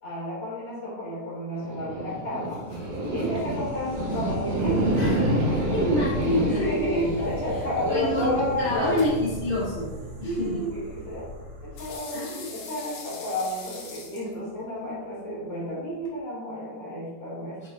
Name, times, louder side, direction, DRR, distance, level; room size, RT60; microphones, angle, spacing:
voice 1, 0.0-2.6 3.1-5.4 6.4-9.1 10.2-11.3 11.6-17.7, left 1 dB, 40° left, -7 dB, 3.2 m, -31 dB
sound 1, 1.6-12.0, right 1 dB, 60° right, 2.0 m, -29 dB
sound 2, 1.9-16.2, left 3 dB, 80° left, 3.9 m, -48 dB
voice 2, 4.9-5.2 5.6-6.7 7.9-9.9 10.2-10.7 12.1-12.5 17.6-17.7, left 1 dB, 35° right, -10 dB, 1.1 m, -27 dB
8.2 x 7.1 x 2.7 m, 1.2 s
omnidirectional pair, 5.3 m